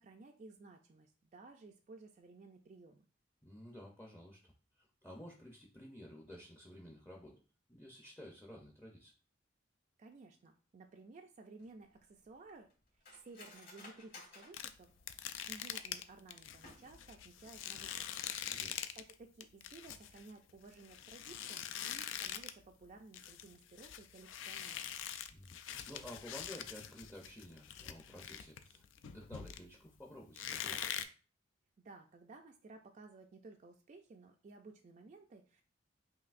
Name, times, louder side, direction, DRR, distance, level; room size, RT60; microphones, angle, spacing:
voice 1, 0.0-3.1 10.0-14.9 15.2-18.2 19.0-24.9 31.8-35.6, right 3 dB, 40° right, 3 dB, 0.3 m, -56 dB
voice 2, 3.4-7.4 7.7-9.1 18.4-18.8 25.3-31.0, left 1 dB, 10° left, 0 dB, 0.6 m, -53 dB
Cutlery silverware, 11.6-16.0 16.5-17.2 17.5-17.6 18.0-18.3 18.6-18.8, left 3 dB, 50° left, 2.1 m, -57 dB
sound 1, 14.5-19.1 19.4-22.6 22.9-29.9 30.4-31.0, left 9 dB, 75° left, 0.4 m, -44 dB
5.7 x 2.6 x 2.5 m, 0.37 s
head